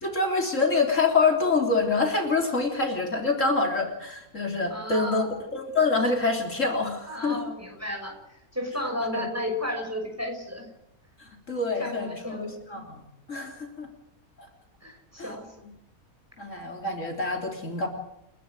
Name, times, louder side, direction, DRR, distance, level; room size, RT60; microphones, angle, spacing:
voice 1, 0.0-7.4 9.1-9.3 11.2-13.0 13.3-13.9 15.2-15.3 16.4-17.9, left 3 dB, 55° left, 3 dB, 3.8 m, -26 dB
voice 2, 4.7-5.3 7.1-10.7 11.8-12.6 14.8-15.4, left 1 dB, 10° right, 3 dB, 6.1 m, -33 dB
30.0 x 12.0 x 9.1 m, 0.85 s
omnidirectional pair, 1.5 m